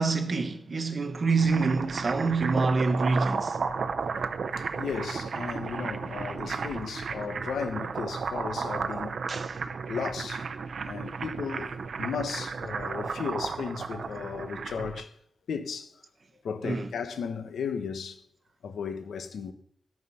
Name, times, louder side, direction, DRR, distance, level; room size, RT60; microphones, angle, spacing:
voice 1, 0.0-3.6 9.3-9.6 16.6-16.9, right 4 dB, 35° right, 1.2 m, -26 dB
sound 1, 1.1-15.0, right 5 dB, 50° right, 0.7 m, -33 dB
voice 2, 4.6-9.2 9.9-10.4 10.9-15.1 15.5-15.9 16.4-18.2 18.6-19.5, left 6 dB, 85° left, 1.2 m, -35 dB
13.5 x 7.5 x 5.8 m
wide cardioid pair, 175°, 0 cm